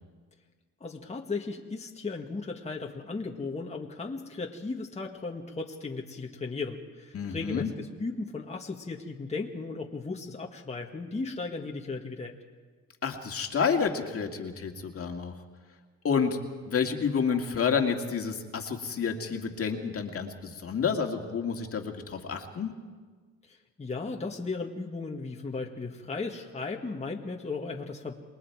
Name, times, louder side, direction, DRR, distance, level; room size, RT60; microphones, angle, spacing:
voice 1, 0.8-12.3 23.4-28.2, left 3 dB, 20° left, 0 dB, 1.6 m, -36 dB
voice 2, 7.1-7.7 13.0-15.3 16.0-16.4 16.7-22.7, left 6 dB, 50° left, 4 dB, 2.1 m, -29 dB
28.0 x 20.5 x 4.8 m, 1.4 s
cardioid pair, 90°, 30 cm